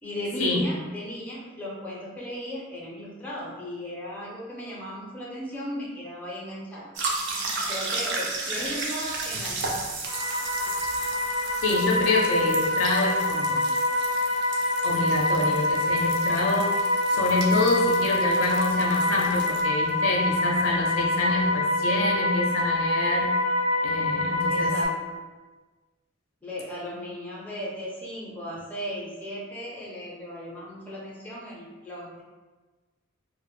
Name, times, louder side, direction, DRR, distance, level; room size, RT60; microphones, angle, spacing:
voice 1, 0.0-6.9 7.7-10.0 24.5-25.2 26.4-32.2, equal, 10° left, -6 dB, 0.4 m, -36 dB
sound 1, 6.9-19.6, right 3 dB, 55° right, 0.4 m, -34 dB
sound 2, 10.1-24.8, left 2 dB, 85° right, 0.8 m, -26 dB
voice 2, 11.6-13.6 14.8-23.4 23.8-24.8, left 2 dB, 70° left, 0 dB, 0.4 m, -26 dB
2.0 x 2.0 x 3.1 m, 1.3 s
head